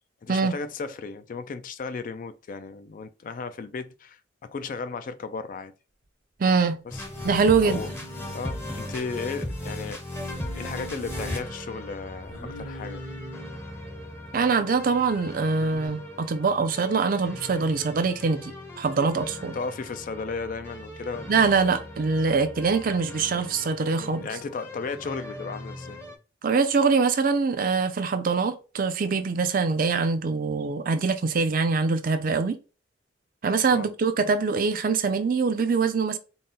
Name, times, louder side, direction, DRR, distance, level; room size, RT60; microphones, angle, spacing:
voice 1, 0.2-5.7 6.8-7.0 7.6-7.9 8.3-10.0 10.5-13.1 19.5-21.4 24.0-26.0 33.7-33.9, left 4 dB, 45° left, 0.3 m, -35 dB
voice 2, 6.4-6.8 7.2-7.8 14.3-19.6 21.3-24.3 26.4-32.6 33.4-36.2, right 4 dB, 45° right, 0.4 m, -24 dB
sound 1, 6.9-26.2, left 1 dB, 10° left, 0.7 m, -38 dB
Singing, 7.1-9.6 10.2-11.4 12.3-13.6 15.6-15.9, equal, 75° left, 1.9 m, -43 dB
3.9 x 2.1 x 3.7 m
head